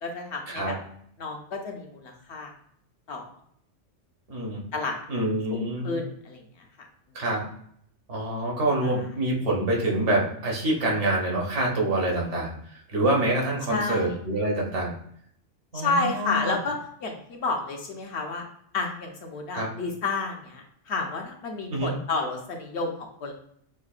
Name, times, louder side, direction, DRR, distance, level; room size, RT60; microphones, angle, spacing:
voice 1, 0.0-0.8 1.2-2.5 3.1-3.2 4.7-5.0 5.5-6.9 8.8-9.1 13.7-14.2 15.7-18.4 18.7-23.3, left 3 dB, 65° left, 2 dB, 0.9 m, -31 dB
voice 2, 4.3-4.6 5.1-6.0 7.1-7.4 8.1-14.9 15.7-16.6 19.5-19.7 21.7-21.9, right 1 dB, 75° right, -2 dB, 1.4 m, -26 dB
6.3 x 2.1 x 2.4 m, 0.67 s
omnidirectional pair, 1.2 m